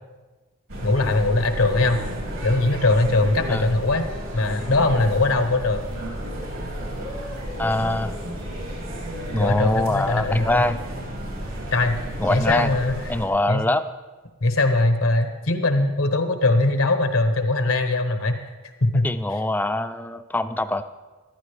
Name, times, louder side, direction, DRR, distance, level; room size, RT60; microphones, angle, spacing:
sound 1, 0.7-13.3, equal, 75° right, 2.8 m, -32 dB
voice 1, 0.8-2.0 2.4-4.1 4.3-5.9 9.4-10.6 11.7-11.9 12.3-13.1 13.5-13.6 14.4-18.4 18.8-19.1, left 2 dB, 85° left, 7 dB, 1.1 m, -21 dB
voice 2, 7.6-8.2 9.3-10.8 12.2-12.7 13.1-13.8 19.0-20.8, left 1 dB, 10° left, 10 dB, 0.3 m, -23 dB
14.5 x 10.5 x 3.3 m, 1.3 s
head